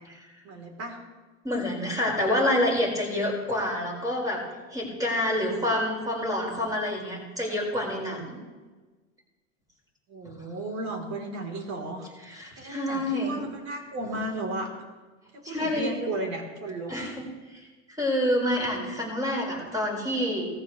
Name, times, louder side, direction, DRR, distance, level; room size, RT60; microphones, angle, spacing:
voice 1, 0.4-1.0 10.1-12.1 12.6-14.7 15.5-16.9, right 2 dB, 45° right, 2 dB, 3.8 m, -34 dB
voice 2, 1.4-4.4 4.7-8.4 12.2-13.4 15.4-16.1 16.9-20.4, left 1 dB, 10° right, -2 dB, 5.3 m, -28 dB
18.0 x 14.5 x 3.3 m, 1.3 s
supercardioid pair, 125°, 38 cm